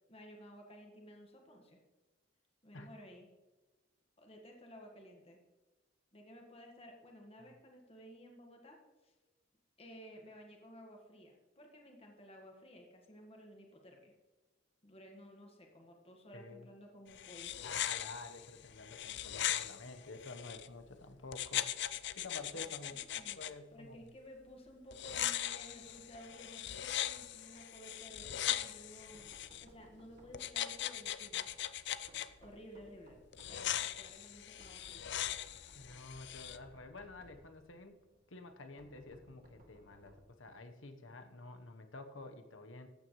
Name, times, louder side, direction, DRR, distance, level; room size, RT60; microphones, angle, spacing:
voice 1, 0.1-1.8 2.6-3.3 4.2-5.4 6.1-8.8 9.0-9.1 9.8-14.1 14.8-17.5 22.9-23.4 23.7-29.3 29.6-31.5 32.4-33.2 33.5-35.1, equal, 30° left, 1 dB, 1.6 m, -55 dB
voice 2, 16.3-16.7 17.6-21.8 22.1-23.0 23.4-24.0 35.7-38.0 38.3-42.9, left 3 dB, 85° left, 7 dB, 1.1 m, -50 dB
sound 1, 17.1-20.7 21.3-23.5 24.9-29.6 30.3-32.3 33.3-36.6, left 12 dB, 65° left, 0.5 m, -40 dB
Knock, 28.2-40.4, equal, 50° right, 2.2 m, -63 dB
14.0 x 9.2 x 3.2 m, 1.2 s
head